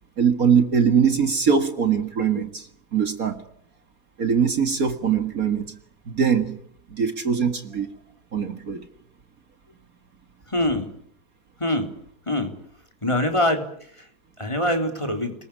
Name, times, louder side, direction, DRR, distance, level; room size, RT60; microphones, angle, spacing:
voice 1, 0.2-2.7 2.9-3.4 4.2-5.8 6.1-6.6 6.9-7.9 8.3-8.8, right 7 dB, 55° right, 2.2 m, -22 dB
voice 2, 10.5-10.9 11.6-11.9 12.3-12.5 13.0-13.6 14.0-14.1 14.4-15.3, left 1 dB, 15° left, 3.8 m, -23 dB
29.5 x 21.0 x 8.8 m
omnidirectional pair, 1.8 m